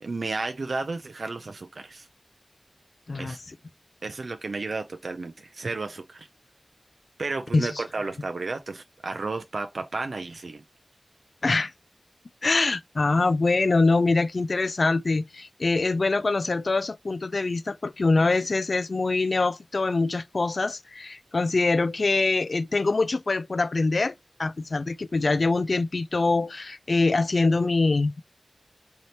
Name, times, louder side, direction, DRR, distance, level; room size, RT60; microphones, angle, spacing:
voice 1, 0.0-2.1 3.2-3.4 4.0-6.3 7.2-10.6, right 3 dB, 85° right, 0.3 m, -32 dB
voice 2, 12.4-24.1 24.4-28.2, left 3 dB, 70° left, 0.3 m, -24 dB
3.3 x 2.8 x 4.1 m
wide cardioid pair, 65°, 0 cm